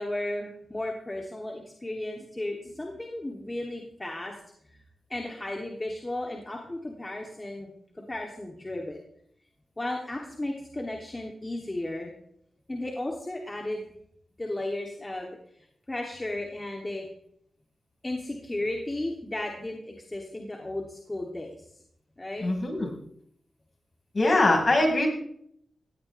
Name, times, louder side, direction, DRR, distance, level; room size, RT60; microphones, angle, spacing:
voice 1, 0.0-4.3 5.1-7.7 7.9-9.0 9.8-12.1 12.7-13.9 14.4-15.4 15.9-17.1 18.0-21.5 22.2-22.5, left 1 dB, 25° left, 0 dB, 3.0 m, -34 dB
voice 2, 22.4-22.9 24.1-25.1, left 2 dB, 45° left, 1 dB, 5.4 m, -22 dB
17.5 x 16.5 x 3.5 m, 0.68 s
cardioid pair, 55°, 0 cm